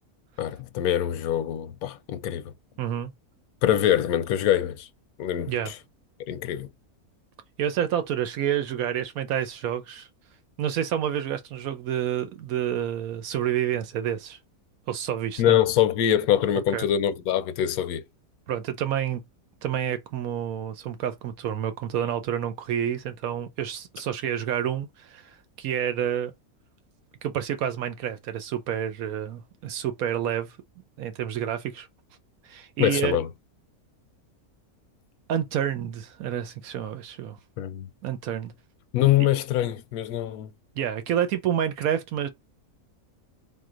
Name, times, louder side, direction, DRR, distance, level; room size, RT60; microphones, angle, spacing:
voice 1, 0.4-2.4 3.6-4.9 5.2-5.7 6.3-6.7 15.4-18.0 32.8-33.3 37.6-37.9 38.9-40.5, left 11 dB, 85° left, 1.1 m, -24 dB
voice 2, 2.8-3.1 5.4-5.7 7.6-10.1 10.6-14.4 14.9-15.6 16.7-16.9 18.5-19.2 19.6-25.3 25.6-26.3 27.2-30.5 31.0-31.9 32.4-33.2 35.3-37.4 38.0-38.5 40.8-42.3, right 9 dB, 75° right, 1.1 m, -29 dB
3.8 x 2.7 x 3.8 m
omnidirectional pair, 1.6 m